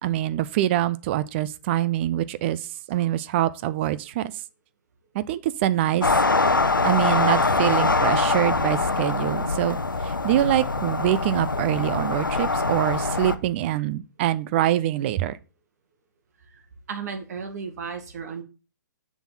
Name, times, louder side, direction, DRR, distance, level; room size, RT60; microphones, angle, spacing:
voice 1, 0.0-2.6 2.9-4.3 5.1-6.1 6.8-9.8 10.0-15.4, right 13 dB, 35° right, 0.6 m, -24 dB
sound 1, 6.0-13.4, left 3 dB, 85° left, 0.7 m, -23 dB
voice 2, 16.5-18.4, right 5 dB, 55° right, 1.9 m, -35 dB
6.9 x 6.2 x 4.1 m
figure-of-eight pair, 120°, 11 cm